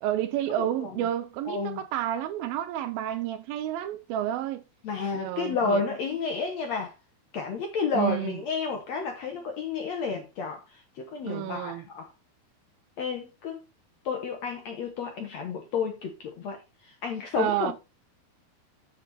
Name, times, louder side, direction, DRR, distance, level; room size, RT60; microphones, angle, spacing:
voice 1, 0.0-4.6 5.1-5.8 7.9-8.4 11.2-11.9 17.4-17.7, right 12 dB, 80° right, 2.3 m, -30 dB
voice 2, 0.6-0.9 1.5-1.8 4.8-6.9 7.3-12.1 13.0-13.6 14.0-16.6 16.8-17.7, left 4 dB, 65° left, 1.7 m, -31 dB
7.4 x 7.4 x 4.2 m
omnidirectional pair, 4.5 m